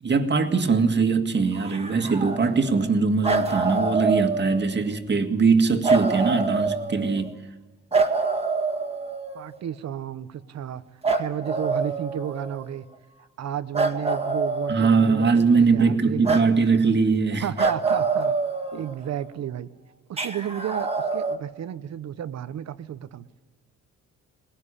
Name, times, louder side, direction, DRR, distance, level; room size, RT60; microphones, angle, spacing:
voice 1, 0.0-7.3 14.7-17.5, right 4 dB, 35° right, 1.9 m, -21 dB
sound 1, 1.5-2.9 3.2-4.9 5.8-7.3 7.9-9.5 11.0-12.7 13.7-15.4 16.2-16.5 17.6-19.2 20.2-21.4, right 4 dB, 20° right, 1.9 m, -26 dB
voice 2, 9.3-10.8 11.1-12.8 13.4-16.5 17.4-18.4 18.7-19.7 20.1-23.4, right 10 dB, 60° right, 1.0 m, -32 dB
20.0 x 18.0 x 10.0 m
cardioid pair, 90°, 30 cm